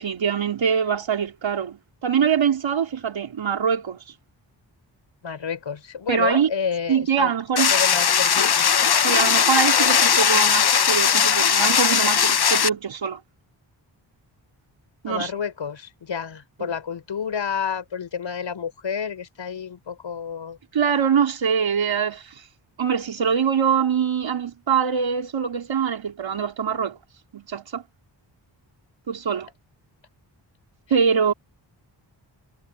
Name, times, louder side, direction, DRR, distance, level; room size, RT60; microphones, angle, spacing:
voice 1, 0.0-4.0 6.1-6.5 6.9-7.7 9.0-13.2 15.0-15.3 16.6-16.7 20.7-22.3 22.8-27.0 27.3-27.8 29.1-29.5 30.9-31.3, right 7 dB, 80° right, 4.2 m, -23 dB
voice 2, 5.2-7.3 7.7-8.7 15.1-20.6, left 6 dB, 75° left, 5.1 m, -29 dB
sound 1, 7.6-12.7, left 7 dB, 55° left, 1.1 m, -19 dB
wide cardioid pair, 115°, 45 cm